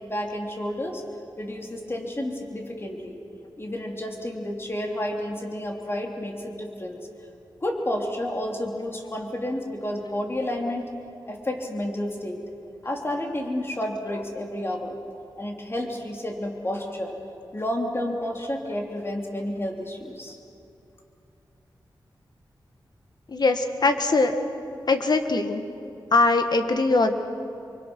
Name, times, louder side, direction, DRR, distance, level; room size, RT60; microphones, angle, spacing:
voice 1, 0.1-1.0 1.4-3.2 3.6-7.0 7.6-10.9 11.3-12.4 12.8-15.0 15.4-17.1 17.5-20.4, left 1 dB, 30° left, 1 dB, 3.3 m, -30 dB
voice 2, 23.3-24.3 24.9-25.6 26.1-27.2, left 3 dB, 55° left, 7 dB, 1.7 m, -21 dB
26.0 x 23.5 x 6.2 m, 2.7 s
wide cardioid pair, 85°, 8 cm